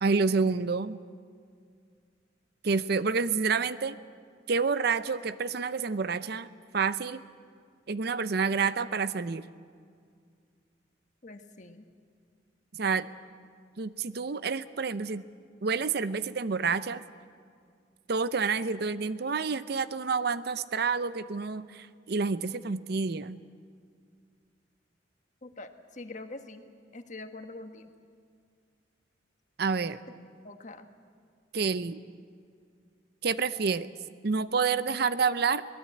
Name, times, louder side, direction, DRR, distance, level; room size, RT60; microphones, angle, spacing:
voice 1, 0.0-1.0 2.6-4.0 4.5-6.5 6.7-7.2 7.9-9.5 12.8-13.1 13.8-15.2 15.6-17.0 18.1-23.4 29.6-30.0 31.5-32.0 33.2-33.9 34.2-35.6, right 5 dB, 55° right, 14 dB, 0.6 m, -28 dB
voice 2, 11.2-11.9 25.4-26.6 26.9-27.9 30.4-30.9, left 2 dB, 40° left, 7 dB, 1.4 m, -44 dB
24.0 x 18.5 x 8.6 m, 2.2 s
head